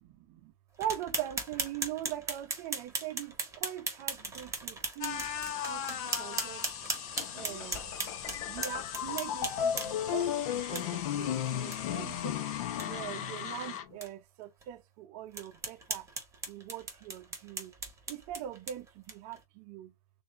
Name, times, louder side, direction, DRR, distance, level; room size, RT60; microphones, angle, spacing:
sound 1, 0.8-10.1 10.7-10.8 11.2-11.3 11.7-11.8 12.2-12.3 12.6-12.9 13.4-13.5 14.0-14.1 14.6-14.7 15.3-19.4, right 3 dB, 15° right, 1.7 m, -38 dB
voice 1, 0.8-5.3 5.7-6.6 7.3-8.0 8.5-12.4 12.8-16.1 16.5-17.7 18.1-19.9, right 12 dB, 45° right, 0.6 m, -41 dB
sound 2, 5.0-13.8, left 9 dB, 40° left, 1.1 m, -40 dB
sound 3, 7.2-13.9, left 10 dB, 65° left, 0.8 m, -35 dB
6.5 x 2.6 x 2.4 m
hypercardioid pair, 115°, 20 cm